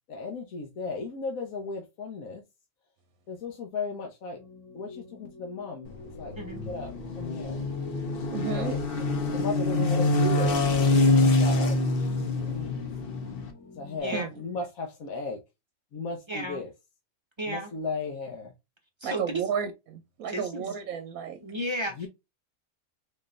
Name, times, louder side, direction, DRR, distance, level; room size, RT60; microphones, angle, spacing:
voice 1, 0.1-2.4 3.3-4.4 4.7-6.3 6.6-7.6 8.4-12.8 13.8-15.4 15.9-16.7 17.5-18.5 22.0-22.1, left 4 dB, 75° left, 1.2 m, -36 dB
sound 1, 4.3-14.0, left 4 dB, 15° left, 0.6 m, -46 dB
sound 2, 5.9-13.5, left 2 dB, 50° left, 0.8 m, -25 dB
voice 2, 8.3-8.7 14.1-14.3 19.0-21.4, right 7 dB, 75° right, 1.0 m, -33 dB
voice 3, 16.3-16.6 17.4-17.7 19.0-19.4 20.3-20.6 21.4-22.0, right 1 dB, 30° right, 0.5 m, -32 dB
4.1 x 3.2 x 2.4 m
omnidirectional pair, 1.5 m